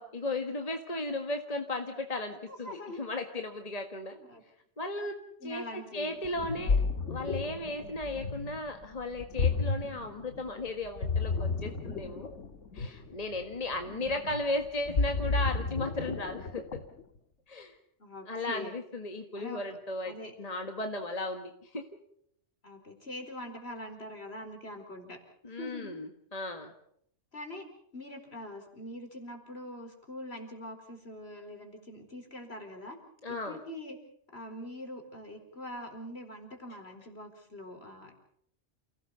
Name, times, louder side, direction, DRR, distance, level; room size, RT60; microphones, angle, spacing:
voice 1, 0.0-4.2 4.8-6.8 7.1-12.3 12.7-16.8 17.5-17.8 18.3-21.8 25.4-26.7 33.2-33.6, left 2 dB, 35° left, 5 dB, 1.7 m, -36 dB
voice 2, 2.5-3.0 4.2-4.4 5.4-6.8 13.8-14.4 18.0-18.8 19.3-19.6 20.1-20.3 22.6-25.2 25.5-26.0 27.3-27.7 27.9-33.0 33.3-34.0 34.3-38.1, left 1 dB, 60° left, 4 dB, 4.8 m, -44 dB
Ocean, 6.2-17.0, left 4 dB, 85° left, 1.8 m, -32 dB
29.0 x 17.5 x 7.0 m, 0.70 s
omnidirectional pair, 1.2 m